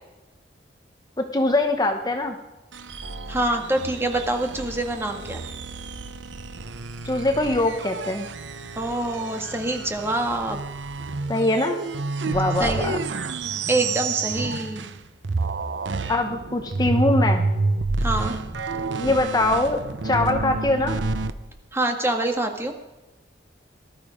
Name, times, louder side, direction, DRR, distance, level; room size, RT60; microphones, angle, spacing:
voice 1, 1.2-2.4 7.0-8.3 11.3-11.8 12.3-13.0 16.1-17.5 19.0-21.0, left 2 dB, 20° left, 5 dB, 0.9 m, -23 dB
sound 1, 2.7-15.0 15.2-21.3, right 3 dB, 85° right, 0.8 m, -29 dB
voice 2, 3.3-5.4 8.7-10.6 12.6-12.9 13.7-14.9 18.0-18.4 21.7-22.7, right 2 dB, 15° right, 3 dB, 1.7 m, -25 dB
19.0 x 12.5 x 5.0 m, 1.1 s
head